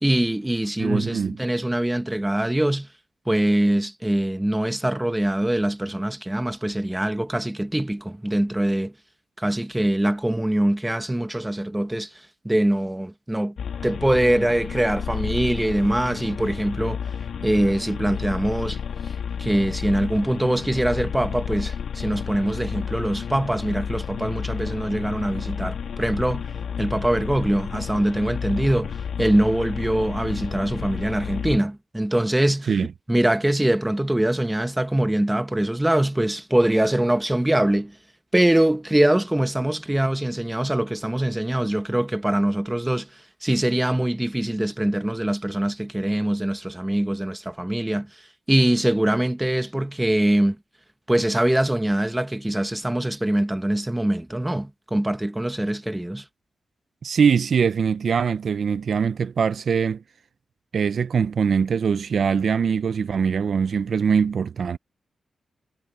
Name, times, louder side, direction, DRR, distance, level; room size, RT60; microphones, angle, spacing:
voice 1, 0.0-2.9 3.3-8.9 9.4-13.5 13.8-17.0 17.4-18.8 19.4-26.5 26.8-32.7 33.1-38.0 38.3-48.1 48.5-50.6 51.1-56.2, right 1 dB, 10° right, 1.1 m, -23 dB
voice 2, 0.8-1.3 32.7-32.9 57.0-60.0 60.7-64.8, right 6 dB, 60° right, 0.5 m, -22 dB
sound 1, 13.6-31.6, left 7 dB, 85° left, 2.7 m, -31 dB
wide cardioid pair, 140°, 0 cm